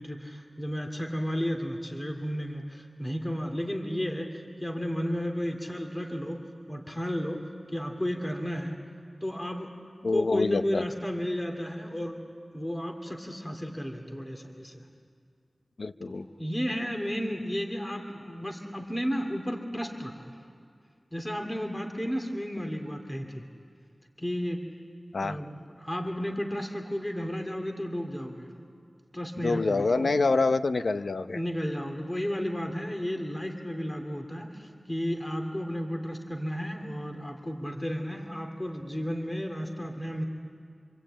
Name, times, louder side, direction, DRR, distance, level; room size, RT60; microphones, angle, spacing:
voice 1, 0.0-8.8 9.2-9.7 10.1-12.2 12.5-14.8 16.0-20.4 21.1-23.4 24.2-24.7 25.2-28.5 29.1-30.1 31.3-40.2, equal, 20° left, 4 dB, 2.3 m, -33 dB
voice 2, 10.0-10.8 15.8-16.2 25.1-25.4 29.4-31.4, left 3 dB, 80° left, 10 dB, 0.7 m, -26 dB
26.0 x 26.0 x 8.7 m, 2.3 s
wide cardioid pair, 75°, 0 cm